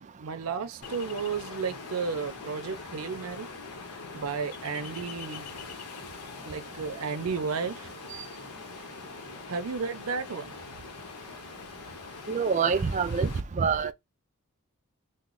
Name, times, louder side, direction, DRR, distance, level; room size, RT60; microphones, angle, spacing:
voice 1, 0.0-3.5 4.1-5.5 6.0-6.1 6.4-7.9 9.0-9.1 9.5-10.5, right 5 dB, 75° right, 0.6 m, -33 dB
Ocean, 0.8-13.4, left 5 dB, 90° left, 0.7 m, -43 dB
voice 2, 12.3-13.3 13.5-13.9, right 5 dB, 30° right, 0.3 m, -25 dB
3.0 x 2.0 x 3.7 m
head